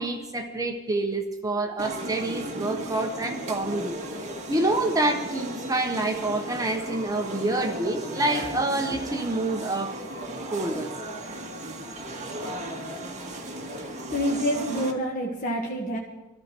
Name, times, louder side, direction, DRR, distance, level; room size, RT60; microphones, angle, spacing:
voice 1, 0.0-4.0 4.5-10.0 10.5-10.9, right 2 dB, 15° right, 3 dB, 1.1 m, -27 dB
sound 1, 1.8-14.9, right 1 dB, 35° right, 1.9 m, -36 dB
voice 2, 14.1-16.0, equal, 40° left, -2 dB, 1.6 m, -27 dB
21.5 x 13.0 x 4.5 m, 1.1 s
head